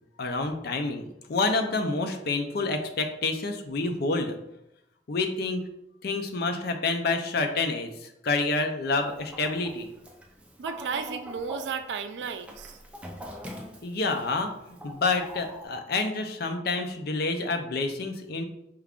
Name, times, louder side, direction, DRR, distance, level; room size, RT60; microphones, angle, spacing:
voice 1, 0.2-4.4 5.1-5.7 6.0-9.9 13.8-18.4, left 3 dB, 60° left, 6 dB, 0.5 m, -28 dB
Chicken rooster, 8.9-15.7, equal, 5° right, 0.5 m, -43 dB
voice 2, 10.6-12.8, right 6 dB, 70° right, 9 dB, 0.4 m, -34 dB
4.6 x 2.4 x 3.5 m, 0.84 s
head